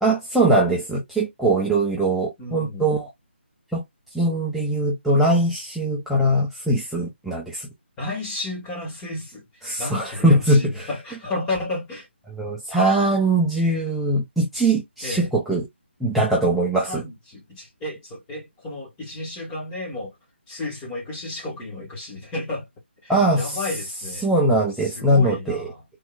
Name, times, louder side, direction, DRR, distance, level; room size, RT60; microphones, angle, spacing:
voice 1, 0.0-3.1 3.7-3.8 4.1-7.7 9.6-10.9 12.4-15.7 16.0-17.0 23.1-23.6 24.2-25.7, right 1 dB, ahead, 0.5 m, -21 dB
voice 2, 2.4-2.9 8.0-12.1 15.0-15.3 16.8-20.2 20.5-22.7 23.0-24.2 24.8-25.8, left 2 dB, 15° left, 1.5 m, -32 dB
3.7 x 2.9 x 2.3 m
figure-of-eight pair, 150°, 6 cm